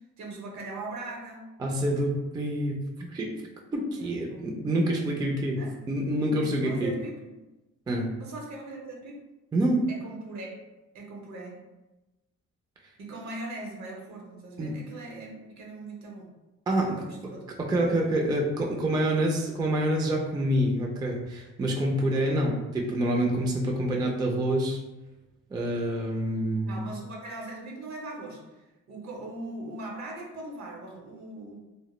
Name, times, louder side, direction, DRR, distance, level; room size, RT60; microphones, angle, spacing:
voice 1, 0.2-1.4 4.0-4.5 5.6-5.7 6.6-7.3 8.1-9.2 9.9-10.5 10.9-11.6 13.0-16.3 16.9-17.5 17.8-18.5 22.2-22.4 26.7-28.6 28.9-31.6, right 2 dB, 65° right, -1 dB, 0.8 m, -40 dB
voice 2, 1.6-3.3 3.7-5.6 5.9-6.9 7.9-8.1 9.5-9.9 14.6-14.7 16.7-17.0 17.6-24.8 25.5-26.8, right 1 dB, 15° right, 0 dB, 0.3 m, -27 dB
2.1 x 2.0 x 3.0 m, 1.1 s
cardioid pair, 90°, 30 cm